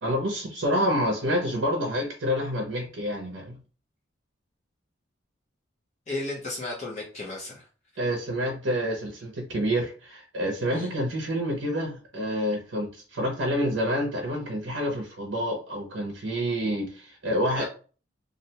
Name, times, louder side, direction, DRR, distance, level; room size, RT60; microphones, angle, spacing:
voice 1, 0.0-3.6 8.0-17.6, equal, 75° right, 2 dB, 0.6 m, -28 dB
voice 2, 6.1-7.6 10.7-10.9 17.5-17.6, left 2 dB, 40° left, -5 dB, 0.7 m, -34 dB
2.4 x 2.1 x 2.8 m, 0.38 s
head